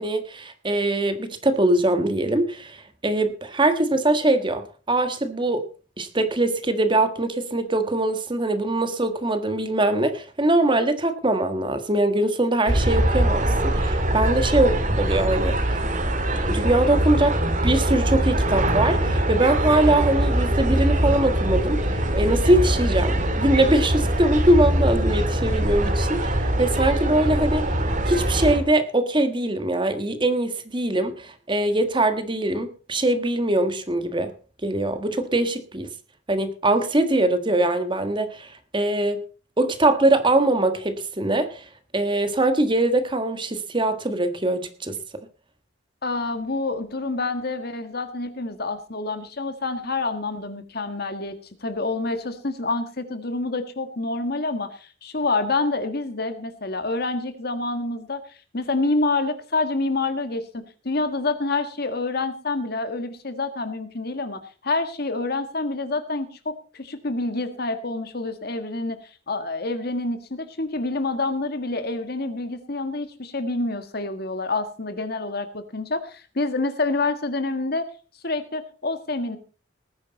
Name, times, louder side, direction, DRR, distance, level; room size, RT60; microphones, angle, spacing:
voice 1, 0.0-5.6 6.0-15.8 16.5-26.2 26.6-27.7 28.1-34.3 34.6-35.9 36.3-39.2 39.6-41.7 41.9-45.0, right 1 dB, 25° right, 9 dB, 1.5 m, -22 dB
sound 1, 12.7-28.6, right 1 dB, 40° right, 2.3 m, -22 dB
voice 2, 46.0-58.2 58.5-77.9 78.2-79.4, left 3 dB, 55° left, 9 dB, 1.7 m, -27 dB
19.0 x 9.8 x 4.1 m, 0.37 s
head